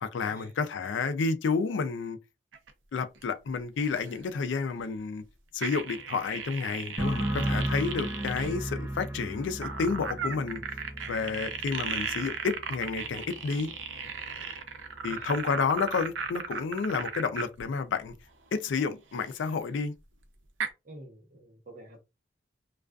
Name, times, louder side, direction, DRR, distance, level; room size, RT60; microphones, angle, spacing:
voice 1, 0.0-2.2 2.9-5.2 5.5-10.6 11.1-13.7 15.0-18.1 18.5-19.9, left 5 dB, 75° left, 0.4 m, -30 dB
sound 1, 2.5-2.7 3.2-3.3 3.8-4.2 5.6-8.6 9.6-17.6 19.7-19.8 20.6-20.7, right 6 dB, 85° right, 0.5 m, -36 dB
sound 2, 7.0-14.4 14.7-15.3, right 1 dB, 15° right, 0.5 m, -36 dB
voice 2, 20.8-22.0, right 1 dB, 50° right, 0.8 m, -49 dB
2.3 x 2.3 x 2.2 m
head